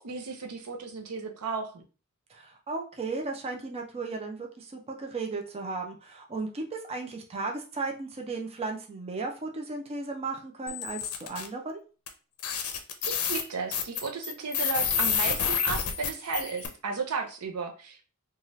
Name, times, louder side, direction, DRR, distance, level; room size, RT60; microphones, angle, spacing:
voice 1, 0.0-1.8 13.0-18.1, right 4 dB, 85° right, 3 dB, 0.6 m, -34 dB
voice 2, 2.3-11.8, right 3 dB, 25° right, 2 dB, 0.4 m, -35 dB
sound 1, 10.7-11.5 12.1-12.2 12.4-16.7, left 7 dB, 75° left, 0.5 m, -29 dB
2.7 x 2.3 x 3.0 m, 0.34 s
head